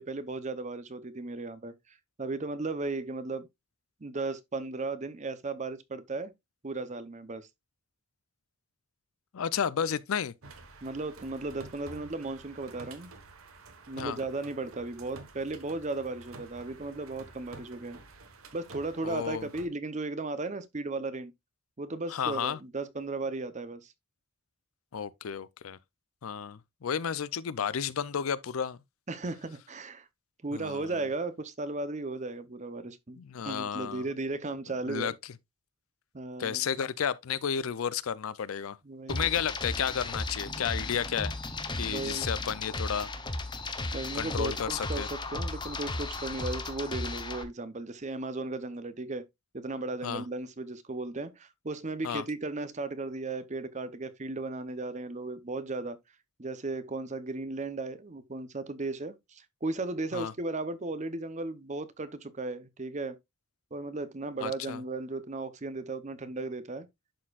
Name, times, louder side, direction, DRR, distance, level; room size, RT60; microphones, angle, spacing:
voice 1, 0.0-3.5 4.0-6.3 6.6-7.5 10.8-13.1 13.9-18.0 18.5-21.3 21.8-23.9 29.1-30.1 30.4-35.1 36.1-36.6 38.8-39.3 41.9-42.3 43.9-49.2 49.5-56.0 56.4-63.2 63.7-66.9, right 3 dB, 35° right, 0.7 m, -36 dB
voice 2, 9.3-10.3 14.0-14.2 19.0-19.5 22.1-22.6 24.9-25.8 26.2-28.8 30.5-30.9 33.2-34.0 34.9-35.1 36.4-38.8 39.1-41.3 41.8-43.1 44.1-45.1 50.0-50.2 52.0-52.2 60.1-60.3 64.4-64.8, left 7 dB, 80° left, 0.5 m, -32 dB
sound 1, 10.4-19.7, right 3 dB, 85° right, 1.3 m, -50 dB
sound 2, 39.1-47.4, left 2 dB, 20° left, 0.8 m, -35 dB
11.5 x 4.3 x 2.4 m
head